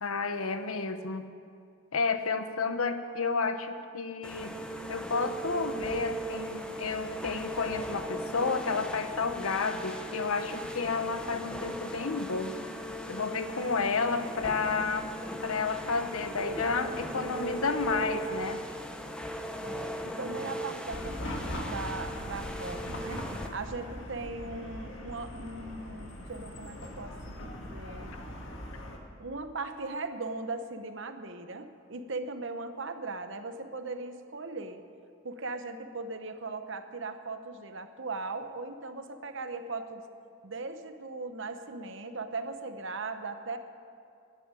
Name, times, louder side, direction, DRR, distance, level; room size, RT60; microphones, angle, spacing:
voice 1, 0.0-1.2 1.9-4.5 4.9-12.5 13.1-15.1 15.4-18.6, left 4 dB, 85° left, 9 dB, 1.0 m, -31 dB
sound 1, 4.2-23.5, right 1 dB, 5° left, 0.8 m, -38 dB
voice 2, 19.6-28.1 29.2-34.8 35.2-40.0 40.4-43.6, right 3 dB, 60° right, 8 dB, 1.0 m, -39 dB
Chatter / Car passing by / Traffic noise roadway noise, 20.9-29.0, equal, 60° left, 1.9 m, -40 dB
12.0 x 10.0 x 9.6 m, 2.4 s
head